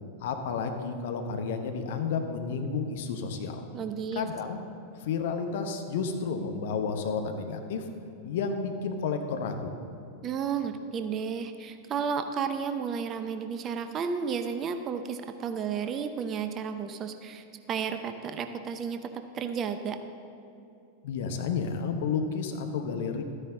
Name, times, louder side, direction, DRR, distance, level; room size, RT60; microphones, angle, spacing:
voice 1, 0.2-3.7 4.1-4.6 5.0-7.8 8.2-9.7 21.0-23.2, left 5 dB, 55° left, 6 dB, 0.9 m, -31 dB
voice 2, 3.7-4.3 10.2-20.0, right 6 dB, 30° right, 8 dB, 0.6 m, -32 dB
13.0 x 9.8 x 3.7 m, 2.6 s
figure-of-eight pair, 90°, 0 cm